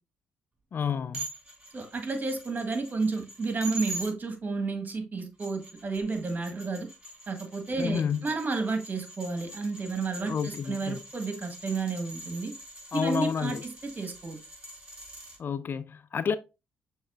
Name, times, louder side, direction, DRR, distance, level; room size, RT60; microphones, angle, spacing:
voice 1, 0.7-1.3 7.8-8.2 10.2-11.0 12.9-13.6 15.4-16.4, left 7 dB, 45° left, 0.4 m, -30 dB
sound 1, 1.1-4.1 5.2-15.4, right 1 dB, 20° right, 2.7 m, -44 dB
voice 2, 1.7-6.9 7.3-12.5 12.9-14.4, right 3 dB, 35° right, 1.4 m, -31 dB
6.4 x 3.3 x 2.4 m
hypercardioid pair, 50°, 5 cm